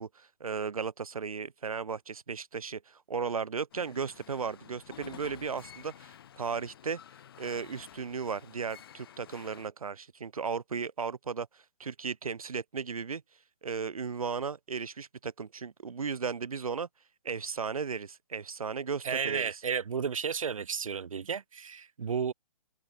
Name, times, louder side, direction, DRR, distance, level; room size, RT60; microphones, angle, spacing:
voice 1, 0.0-7.0 7.4-13.2 13.6-16.9 17.2-19.5, right 5 dB, 90° right, 1.9 m, -35 dB
sound 1, 3.7-9.7, left 10 dB, 45° left, 1.0 m, -51 dB
voice 2, 19.0-22.3, right 6 dB, 70° right, 2.1 m, -32 dB
open air
hypercardioid pair, 165°, 18 cm